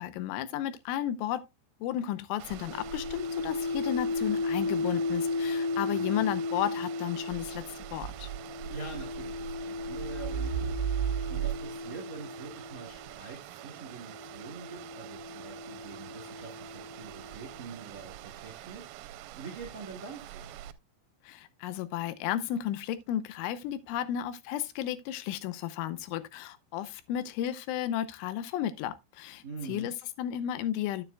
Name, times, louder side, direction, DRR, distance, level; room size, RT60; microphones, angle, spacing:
voice 1, 0.0-1.4 1.8-7.6 7.9-8.3 21.2-31.0, left 11 dB, 85° left, 3.1 m, -33 dB
sound 1, 2.4-20.7, right 11 dB, 85° right, 3.1 m, -40 dB
sound 2, 2.6-13.0 13.9-17.7, left 3 dB, 65° left, 3.0 m, -35 dB
voice 2, 5.9-6.2 8.7-10.7 11.3-18.8 19.3-20.5 29.4-29.9, right 4 dB, 40° right, 1.2 m, -45 dB
9.9 x 9.4 x 2.2 m
omnidirectional pair, 5.5 m